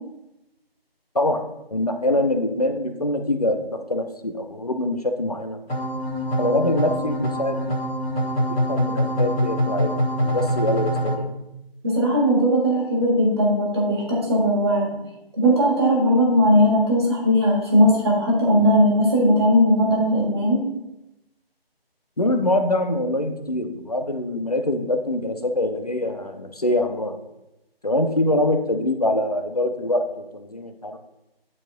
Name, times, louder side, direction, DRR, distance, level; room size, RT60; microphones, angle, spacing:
voice 1, 1.7-5.6 6.4-7.8 8.7-11.3 22.2-27.2 27.8-30.1 30.3-31.0, left 1 dB, 40° left, 6 dB, 0.5 m, -24 dB
sound 1, 5.7-11.2, equal, 75° left, 1.3 m, -24 dB
voice 2, 11.8-15.0 15.3-20.6, equal, 25° right, -3 dB, 1.6 m, -18 dB
10.5 x 4.2 x 2.2 m, 0.93 s
figure-of-eight pair, 165°, 30 cm